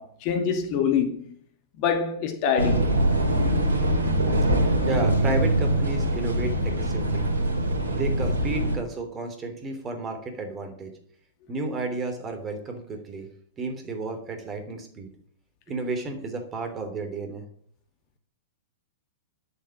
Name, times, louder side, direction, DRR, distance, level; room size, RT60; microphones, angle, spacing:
voice 1, 0.0-1.3 1.8-3.0, left 7 dB, 40° left, 2.1 m, -25 dB
sound 1, 2.6-8.8, right 1 dB, 70° right, 2.8 m, -23 dB
voice 2, 4.9-7.3 7.9-10.9 11.5-13.3 13.6-15.1 15.7-17.4, right 2 dB, 20° right, 3.1 m, -32 dB
11.0 x 7.9 x 7.4 m
figure-of-eight pair, 100°, 0 cm